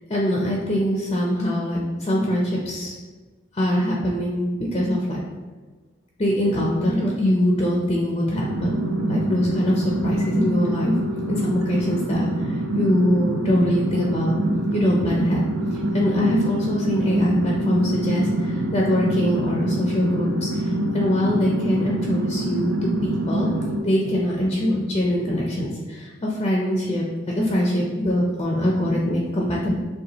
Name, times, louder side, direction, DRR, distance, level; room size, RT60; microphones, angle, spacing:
voice 1, 0.1-2.9 3.5-5.2 6.2-8.8 9.1-10.9 11.3-14.4 14.7-15.5 15.7-20.6 20.9-23.5 23.8-29.8, equal, 30° left, -3 dB, 0.5 m, -23 dB
sound 1, 8.4-23.8, right 1 dB, 85° right, 0.5 m, -25 dB
6.5 x 2.3 x 2.9 m, 1.3 s
head